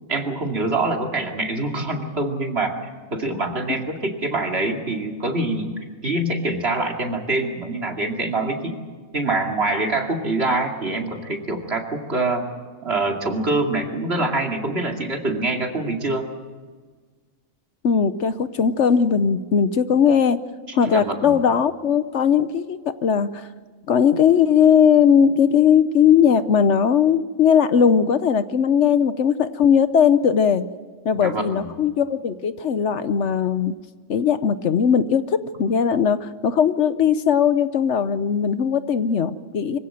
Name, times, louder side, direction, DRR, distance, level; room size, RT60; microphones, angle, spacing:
voice 1, 0.1-2.8 3.1-8.8 9.1-12.5 12.8-16.3 20.7-21.4 31.2-31.7, right 2 dB, 50° right, 2 dB, 2.7 m, -25 dB
voice 2, 17.8-20.4 20.7-23.5 23.9-30.6 31.0-33.8 34.1-39.8, left 7 dB, 65° left, 13 dB, 1.1 m, -19 dB
25.0 x 16.0 x 7.8 m, 1.5 s
omnidirectional pair, 1.4 m